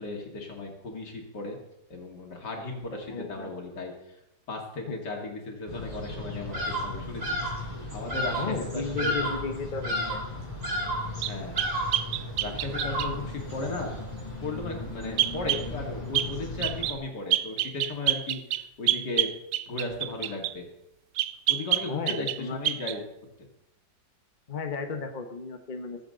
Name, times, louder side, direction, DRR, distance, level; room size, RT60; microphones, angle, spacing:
voice 1, 0.0-1.6 1.9-4.2 4.5-9.4 11.2-11.6 12.4-13.9 14.4-19.3 19.7-20.7 21.5-23.0, left 2 dB, 75° left, 1 dB, 2.9 m, -36 dB
voice 2, 3.1-3.5 4.9-5.0 8.3-10.2 21.8-22.6 24.5-26.0, left 4 dB, 30° left, 5 dB, 1.1 m, -34 dB
sound 1, 5.7-16.9, left 2 dB, 15° left, 4.9 m, -38 dB
Bird vocalization bird call bird song, 6.5-6.9 7.2-7.6 8.1-8.5 9.0-9.5 9.8-10.3 10.6-11.1 11.5-12.1 12.7-13.3, equal, 45° right, 3.4 m, -31 dB
sound 2, 11.2-13.1 15.2-15.7 16.1-16.3 16.6-17.0 17.3-20.6 21.2-22.4 22.6-23.0, right 13 dB, 80° right, 1.2 m, -27 dB
21.5 x 8.2 x 3.9 m, 0.86 s
omnidirectional pair, 1.9 m